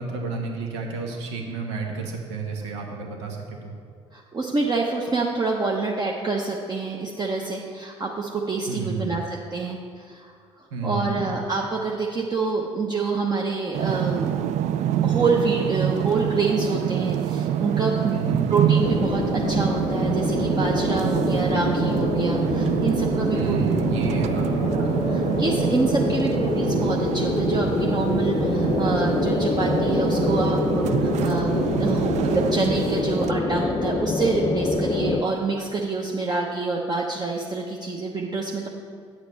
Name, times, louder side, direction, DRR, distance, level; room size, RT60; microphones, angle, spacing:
voice 1, 0.0-3.4 3.6-3.7 8.7-9.1 10.7-11.2 18.1-18.4 23.3-24.6, right 4 dB, 75° right, 1 dB, 1.2 m, -30 dB
voice 2, 4.1-14.3 15.0-18.1 18.5-23.8 24.7-38.7, right 4 dB, 25° right, -1 dB, 0.9 m, -27 dB
sound 1, 13.7-33.3, right 10 dB, 50° right, 0.4 m, -26 dB
sound 2, 18.8-35.2, left 3 dB, 30° left, 0.7 m, -26 dB
9.4 x 8.0 x 4.0 m, 2.3 s
figure-of-eight pair, 50°, 15 cm